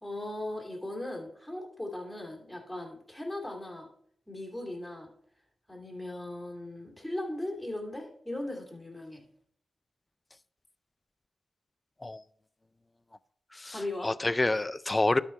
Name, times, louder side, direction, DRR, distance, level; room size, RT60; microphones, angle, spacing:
voice 1, 0.0-3.9 4.3-5.1 5.7-9.2 13.7-14.1, left 1 dB, ahead, 2.7 m, -38 dB
voice 2, 13.5-15.2, left 2 dB, 20° left, 0.4 m, -28 dB
12.0 x 5.2 x 4.4 m
wide cardioid pair, 115°, 0 cm